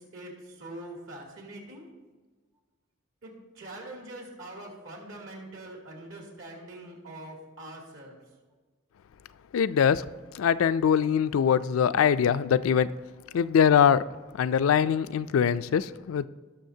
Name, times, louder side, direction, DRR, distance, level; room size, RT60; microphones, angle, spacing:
voice 1, 0.6-1.8 3.2-8.2, right 1 dB, 70° right, -1 dB, 2.6 m, -43 dB
voice 2, 9.5-10.0 10.3-12.9 13.3-14.0 14.4-16.3, left 7 dB, 80° left, 14 dB, 0.3 m, -22 dB
18.0 x 6.3 x 2.8 m, 1.3 s
head